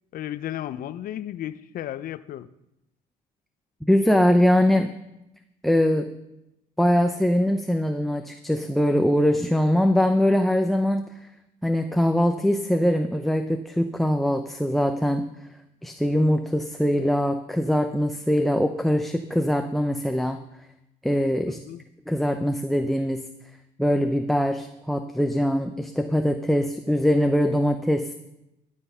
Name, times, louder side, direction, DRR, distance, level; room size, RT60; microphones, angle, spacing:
voice 1, 0.1-2.5 21.6-21.8, left 12 dB, 60° left, 14 dB, 0.6 m, -33 dB
voice 2, 3.9-4.9 5.6-6.1 6.8-11.1 11.6-15.2 15.8-20.4 21.0-21.6 22.1-23.2 23.8-28.1, equal, ahead, 6 dB, 0.7 m, -22 dB
13.5 x 8.2 x 5.6 m, 0.88 s
cardioid pair, 110°, 17 cm